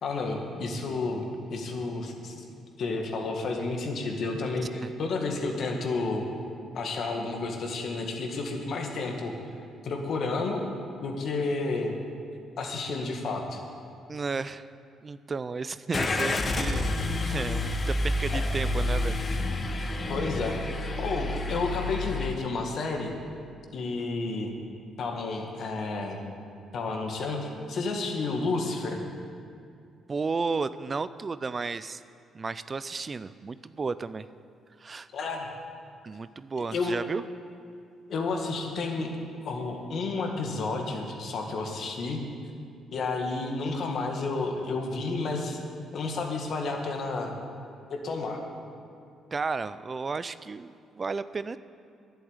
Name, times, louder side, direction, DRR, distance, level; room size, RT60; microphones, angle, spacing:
voice 1, 0.0-1.2 1.5-2.4 2.8-6.3 6.7-9.3 9.8-10.7 11.0-11.9 12.6-13.6 18.3-18.4 20.1-20.6 21.0-23.1 23.7-24.5 25.0-26.2 26.7-29.0 35.1-35.5 36.7-37.0 38.1-39.1 39.4-42.2 42.9-45.6 45.9-47.3 47.9-48.4, left 3 dB, 65° left, 2 dB, 1.8 m, -31 dB
voice 2, 14.1-14.7 15.0-16.9 17.2-19.2 30.1-32.0 32.3-34.3 34.8-35.1 36.0-37.2 49.3-51.6, right 4 dB, 35° right, 15 dB, 0.4 m, -33 dB
Car / Engine starting, 15.9-22.3, left 2 dB, 40° left, 1.3 m, -29 dB
11.0 x 7.9 x 8.9 m, 2.4 s
cardioid pair, 85°, 0 cm